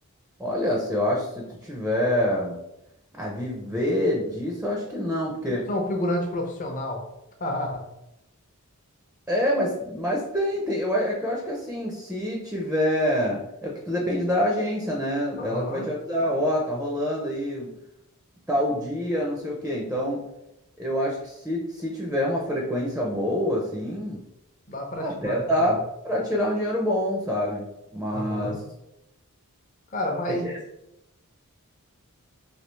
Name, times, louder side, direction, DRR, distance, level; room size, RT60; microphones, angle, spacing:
voice 1, 0.4-2.6 3.1-5.7 9.3-17.7 18.5-20.2 20.8-24.2 25.0-27.7 27.9-28.6 30.3-30.5, equal, 5° right, -2 dB, 0.4 m, -26 dB
voice 2, 5.7-7.0 7.4-7.8 15.4-15.9 24.7-25.7 28.1-28.6 29.9-30.5, left 1 dB, 35° left, 2 dB, 0.6 m, -29 dB
3.3 x 2.7 x 3.0 m, 0.86 s
head